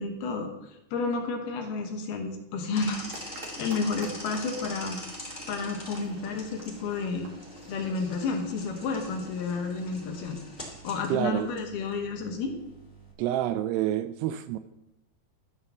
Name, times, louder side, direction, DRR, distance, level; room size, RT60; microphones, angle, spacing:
voice 1, 0.0-3.1 3.6-5.0 5.5-7.3 7.7-10.4 10.8-12.5, left 4 dB, 70° left, 3 dB, 2.9 m, -31 dB
sound 1, 2.7-13.1, equal, 15° left, 1.9 m, -44 dB
sound 2, 3.1-10.4, right 2 dB, 45° right, 1.8 m, -49 dB
voice 2, 11.1-11.5 13.2-14.6, right 12 dB, 80° right, 11 dB, 2.5 m, -28 dB
14.0 x 5.5 x 7.1 m, 0.90 s
omnidirectional pair, 5.0 m